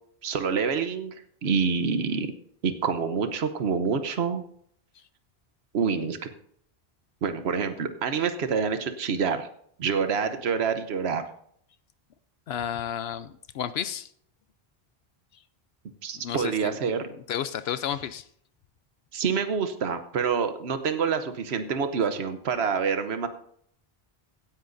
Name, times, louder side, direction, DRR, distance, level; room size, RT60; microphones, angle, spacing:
voice 1, 0.2-1.1 1.4-2.3 2.6-4.4 5.7-6.3 7.2-9.5 9.8-11.2 16.0-17.1 19.1-23.3, right 6 dB, 85° right, 9 dB, 1.1 m, -27 dB
voice 2, 12.5-14.1 16.1-16.7 17.1-18.3, left 9 dB, 80° left, 13 dB, 0.8 m, -32 dB
16.0 x 10.5 x 2.6 m, 0.64 s
omnidirectional pair, 1.0 m